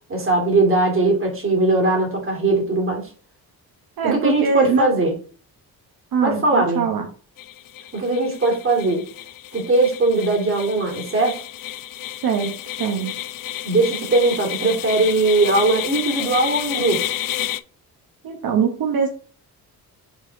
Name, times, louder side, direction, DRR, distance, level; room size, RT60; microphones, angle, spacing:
voice 1, 0.1-3.1 4.0-5.1 6.2-6.9 7.9-9.0 9.5-11.4 13.6-17.0, right 2 dB, 35° right, 2.5 m, -20 dB
voice 2, 4.0-4.9 6.1-7.1 12.2-13.1 18.2-19.1, right 6 dB, 70° right, 1.1 m, -22 dB
sound 1, 7.4-17.6, left 13 dB, 60° left, 0.5 m, -31 dB
6.0 x 4.1 x 3.9 m
cardioid pair, 115°, 37 cm